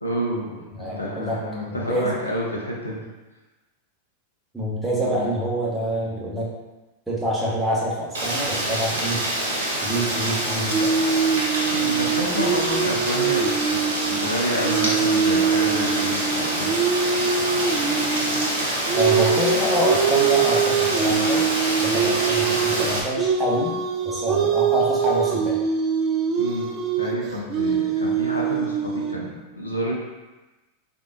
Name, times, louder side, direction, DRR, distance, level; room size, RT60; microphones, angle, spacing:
voice 1, 0.0-3.0 11.7-16.7 17.4-17.5 26.4-29.9, equal, 85° left, -3 dB, 0.7 m, -29 dB
voice 2, 0.8-1.4 1.7-2.1 4.5-6.5 7.1-9.2 9.8-10.9 18.9-21.4 21.8-23.7 24.0-25.6, equal, 5° right, -6 dB, 1.0 m, -26 dB
Rain, 8.1-23.0, right 1 dB, 65° right, 0.8 m, -26 dB
sound 1, 10.7-18.6 18.9-29.1, right 6 dB, 35° right, 0.4 m, -23 dB
3.5 x 2.7 x 2.6 m, 1.1 s
figure-of-eight pair, 90°, 0 cm